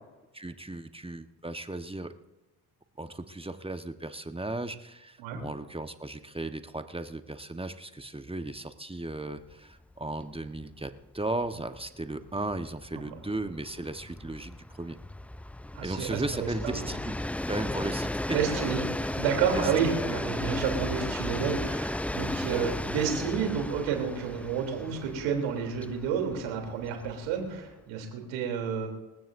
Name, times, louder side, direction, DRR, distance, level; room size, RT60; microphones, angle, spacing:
voice 1, 0.3-2.1 3.0-15.0 15.8-17.2 17.5-18.8 19.5-19.7 20.1-20.2, right 2 dB, 10° right, 8 dB, 1.2 m, -36 dB
Train, 9.4-9.6 9.9-10.0 10.3-27.7, left 1 dB, 5° left, 0.4 m, -35 dB
voice 2, 15.7-16.8 18.3-18.8 19.1-28.9, right 7 dB, 75° right, 2 dB, 3.4 m, -30 dB
27.0 x 15.5 x 2.7 m, 1.1 s
hypercardioid pair, 45°, 45 cm